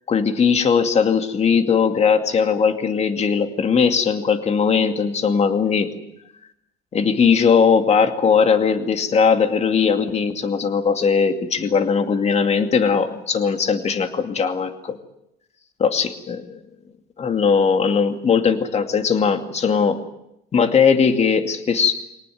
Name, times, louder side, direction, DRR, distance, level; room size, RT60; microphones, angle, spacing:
voice 1, 0.1-5.9 6.9-15.0 15.8-16.6 17.2-20.0 20.5-21.9, left 6 dB, 40° left, 7 dB, 2.4 m, -19 dB
25.0 x 18.5 x 9.4 m, 0.84 s
cardioid pair, 110°, 17 cm